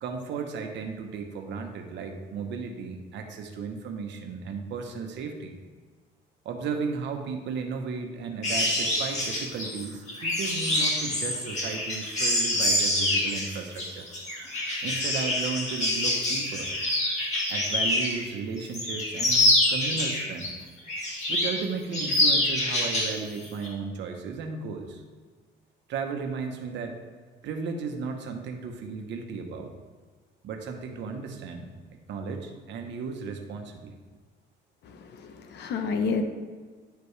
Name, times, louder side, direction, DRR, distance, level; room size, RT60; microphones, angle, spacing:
voice 1, 0.0-5.5 6.4-14.1 14.8-16.7 17.5-20.5 21.3-25.0 25.9-27.0 27.4-29.7 30.4-34.0, right 5 dB, 70° right, 4 dB, 1.1 m, -35 dB
sound 1, 8.4-18.2 18.6-20.5 20.9-21.6 21.9-23.1 23.4-23.7, left 1 dB, 35° left, 1.9 m, -26 dB
voice 2, 34.9-36.2, left 5 dB, 60° left, 7 dB, 0.8 m, -30 dB
10.5 x 5.1 x 3.3 m, 1.5 s
cardioid pair, 150°, 19 cm